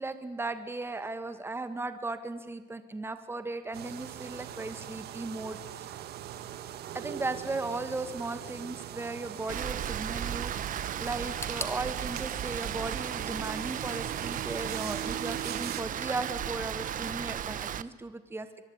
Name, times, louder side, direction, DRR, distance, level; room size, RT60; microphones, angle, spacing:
voice 1, 0.0-6.0 6.9-18.5, right 2 dB, 15° right, 9 dB, 2.1 m, -36 dB
sound 1, 3.7-15.8, right 11 dB, 70° right, 1.8 m, -41 dB
Rain, 9.5-17.8, right 10 dB, 50° right, 1.1 m, -35 dB
sound 2, 11.4-14.3 14.5-15.3 15.6-15.7 16.6-16.7, left 2 dB, 15° left, 2.8 m, -45 dB
24.0 x 23.5 x 9.9 m, 1.2 s
cardioid pair, 110°, 17 cm